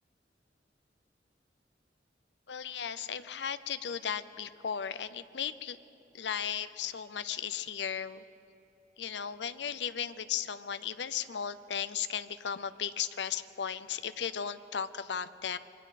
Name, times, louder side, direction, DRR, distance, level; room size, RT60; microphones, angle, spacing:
voice 1, 2.5-5.8 6.1-8.2 9.0-15.6, left 8 dB, 75° left, 13 dB, 0.6 m, -36 dB
27.0 x 22.5 x 4.2 m, 2.9 s
head